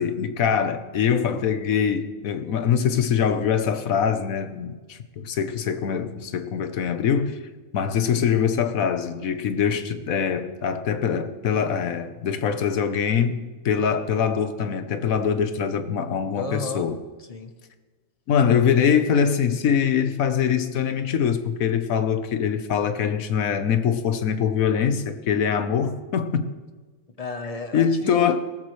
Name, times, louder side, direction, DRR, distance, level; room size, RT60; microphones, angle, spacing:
voice 1, 0.0-7.4 7.7-17.0 18.3-26.5 27.7-28.4, left 7 dB, 65° left, 10 dB, 1.3 m, -23 dB
voice 2, 16.3-16.9 17.2-17.5 27.2-28.4, left 3 dB, 30° left, 7 dB, 0.8 m, -32 dB
18.0 x 14.0 x 3.2 m, 1.3 s
omnidirectional pair, 1.7 m